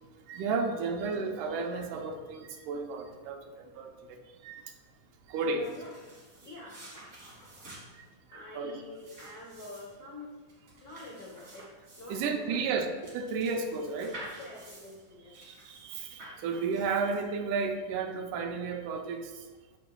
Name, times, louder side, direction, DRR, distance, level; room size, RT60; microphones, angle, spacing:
voice 1, 0.3-3.4 3.8-3.9 4.4-4.6 5.3-5.7 8.5-8.7 12.1-12.9 13.1-14.1 15.4-19.3, right 4 dB, 80° right, 4 dB, 2.2 m, -32 dB
voice 2, 5.4-6.0 6.4-6.8 8.3-10.3 10.8-11.7 12.0-12.8 14.4-15.3, left 2 dB, 75° left, -4 dB, 0.8 m, -46 dB
sound 1, 5.4-17.5, right 1 dB, 30° right, 2.1 m, -50 dB
15.0 x 5.1 x 2.3 m, 1.4 s
omnidirectional pair, 3.7 m